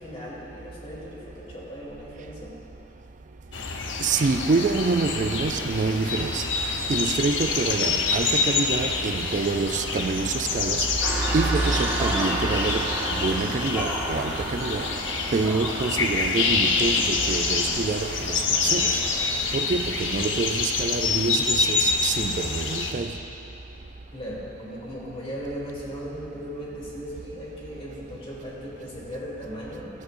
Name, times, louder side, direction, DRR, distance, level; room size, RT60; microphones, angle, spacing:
voice 1, 0.0-2.5 24.1-29.9, equal, 30° left, -6 dB, 2.8 m, -37 dB
sound 1, 3.5-22.9, left 4 dB, 70° left, 0.9 m, -27 dB
voice 2, 4.0-6.4 6.9-10.9 11.3-14.9 15.3-19.0 19.5-23.2, right 3 dB, 40° right, 8 dB, 0.4 m, -26 dB
sound 2, 4.1-19.5, right 1 dB, 60° right, 1.9 m, -41 dB
sound 3, 11.0-18.1, right 1 dB, 10° right, 1.7 m, -32 dB
17.0 x 13.0 x 2.6 m, 2.7 s
head